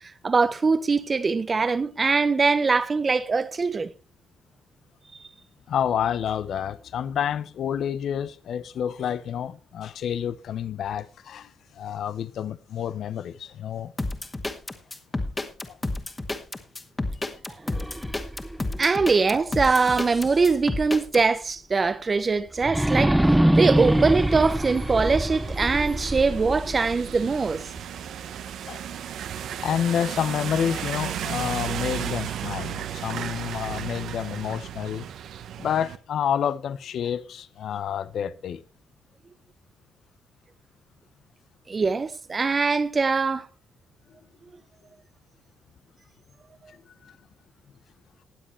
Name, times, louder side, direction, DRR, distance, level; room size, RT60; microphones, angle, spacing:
voice 1, 0.2-3.9 18.8-27.6 41.7-43.5, right 4 dB, 35° right, 0.8 m, -22 dB
voice 2, 5.7-13.9 15.7-15.8 28.7-28.8 29.6-35.1 35.6-38.6 46.7-46.8 47.0-47.1, left 9 dB, 65° left, 0.8 m, -29 dB
sound 1, 14.0-21.2, left 2 dB, 20° left, 1.9 m, -30 dB
sound 2, 17.7-20.7 21.1-21.2 22.6-27.6, right 1 dB, 5° right, 0.6 m, -25 dB
sound 3, 23.7-36.0, right 10 dB, 75° right, 1.0 m, -35 dB
20.5 x 7.6 x 3.2 m
cardioid pair, 90°, 0 cm